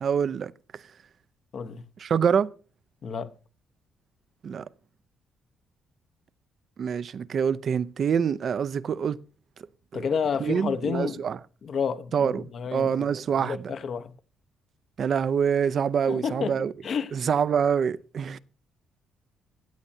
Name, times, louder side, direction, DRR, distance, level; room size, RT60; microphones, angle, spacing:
voice 1, 0.0-0.8 2.0-2.5 4.4-4.7 6.8-9.2 9.9-10.0 10.4-11.4 12.1-13.7 15.0-16.7 17.1-18.4, right 7 dB, 55° right, 0.6 m, -26 dB
voice 2, 1.5-1.8 3.0-3.3 9.9-11.2 11.6-13.1 13.4-14.1 16.1-17.1, left 6 dB, 55° left, 0.9 m, -30 dB
15.5 x 8.5 x 2.7 m
cardioid pair, 90°, 0 cm